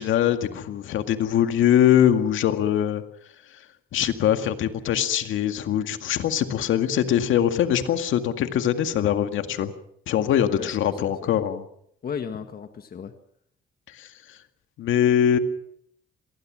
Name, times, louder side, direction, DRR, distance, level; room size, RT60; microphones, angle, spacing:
voice 1, 0.0-3.0 3.9-9.7 10.1-11.7 13.9-14.1 14.8-15.4, left 10 dB, 80° left, 8 dB, 2.0 m, -22 dB
voice 2, 10.5-11.3 12.0-13.1, left 7 dB, 50° left, 7 dB, 1.8 m, -36 dB
26.0 x 19.5 x 6.3 m, 0.72 s
cardioid pair, 90°, 20 cm